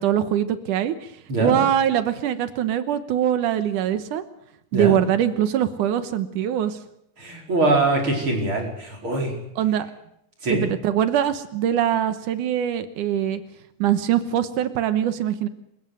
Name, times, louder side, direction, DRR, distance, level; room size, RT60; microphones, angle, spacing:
voice 1, 0.0-1.1 1.4-4.2 4.7-6.8 9.6-9.9 10.5-13.4 13.8-15.5, right 10 dB, 80° right, 11 dB, 2.7 m, -22 dB
voice 2, 7.2-9.3 10.4-10.6, right 2 dB, 40° right, 1 dB, 5.5 m, -23 dB
28.0 x 15.5 x 8.0 m, 0.79 s
omnidirectional pair, 3.6 m